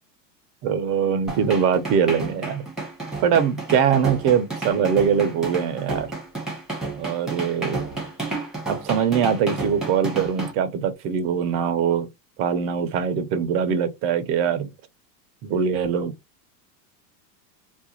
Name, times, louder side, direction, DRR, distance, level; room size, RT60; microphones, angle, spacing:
voice 1, 0.6-2.6 3.2-6.1 7.0-7.8 8.7-12.1 12.4-14.7 15.4-16.1, right 7 dB, 30° right, 0.3 m, -22 dB
sound 1, 1.3-10.5, right 3 dB, ahead, 0.8 m, -31 dB
2.4 x 2.1 x 2.8 m
supercardioid pair, 125°, 50 cm